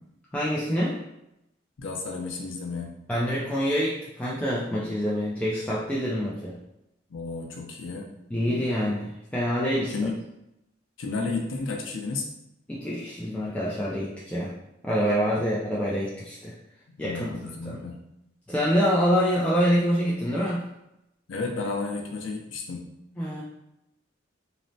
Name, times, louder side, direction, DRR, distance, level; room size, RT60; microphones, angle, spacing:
voice 1, 0.3-1.0 3.1-6.6 8.3-10.1 12.7-14.5 14.8-16.5 17.0-17.8 18.5-20.6 23.2-23.4, equal, 5° left, -7 dB, 0.3 m, -26 dB
voice 2, 1.8-3.0 7.1-8.1 9.9-10.1 11.0-12.3 15.3-15.5 17.0-18.0 21.3-22.9, left 3 dB, 90° left, 1 dB, 0.5 m, -32 dB
3.1 x 2.0 x 2.6 m, 0.85 s
head